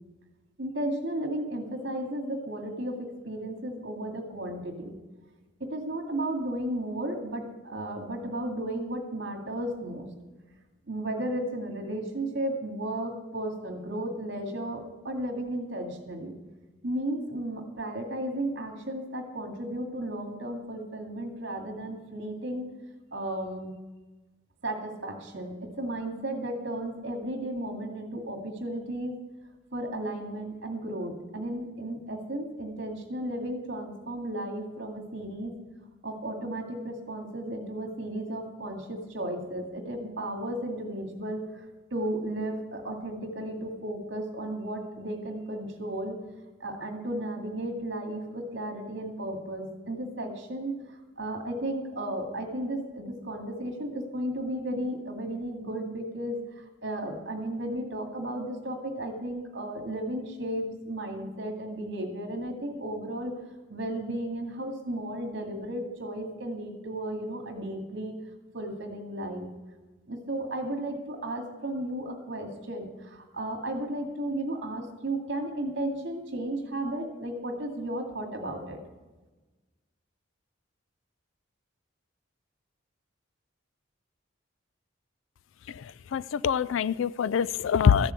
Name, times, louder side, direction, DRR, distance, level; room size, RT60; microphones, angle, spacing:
voice 1, 0.6-5.0 5.6-10.1 10.9-16.4 16.8-22.6 23.1-23.7 24.6-29.2 29.7-35.5 36.0-41.4 41.9-46.2 46.6-50.8 51.2-63.3 63.7-68.2 68.5-69.5 70.1-78.8, right 1 dB, 60° right, 2.2 m, -34 dB
voice 2, 86.1-88.1, left 7 dB, 75° left, 0.3 m, -24 dB
14.0 x 6.9 x 8.2 m
head